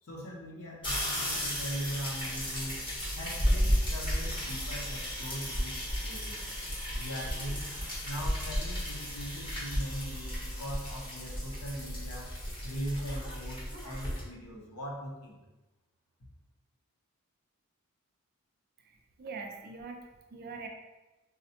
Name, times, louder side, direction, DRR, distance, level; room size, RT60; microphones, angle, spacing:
voice 1, 0.0-2.8 3.2-5.8 6.0-6.4 6.9-7.7 8.0-12.3 12.6-15.4, equal, 75° left, -2 dB, 0.8 m, -40 dB
sound 1, 0.8-14.2, equal, 20° left, 1.0 m, -34 dB
voice 2, 18.8-20.7, right 4 dB, 45° right, 3 dB, 0.4 m, -43 dB
4.0 x 2.1 x 2.8 m, 1.1 s
head